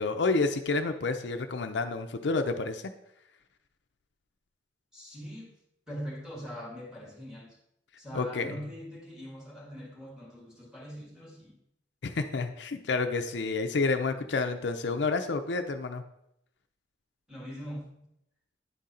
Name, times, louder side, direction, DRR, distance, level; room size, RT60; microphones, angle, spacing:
voice 1, 0.0-2.8 8.1-8.5 12.0-16.0, left 3 dB, 70° left, 7 dB, 0.5 m, -29 dB
voice 2, 4.9-5.5 5.9-7.6 8.0-11.6 17.3-17.9, equal, 5° right, -3 dB, 1.9 m, -42 dB
9.9 x 3.8 x 4.2 m, 0.78 s
head